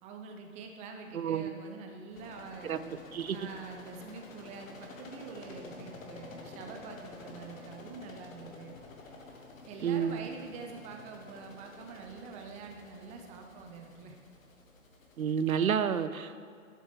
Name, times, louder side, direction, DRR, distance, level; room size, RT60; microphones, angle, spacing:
voice 1, 0.0-3.0 3.3-8.8 9.6-14.2, right 4 dB, 15° right, 3 dB, 0.7 m, -46 dB
voice 2, 1.1-1.5 2.6-2.8 3.1-3.4 9.8-10.3 15.2-16.4, right 8 dB, 90° right, 12 dB, 0.6 m, -30 dB
sound 1, 2.1-15.5, left 3 dB, 75° left, 1.7 m, -50 dB
11.0 x 7.4 x 3.6 m, 2.3 s
hypercardioid pair, 130°, 41 cm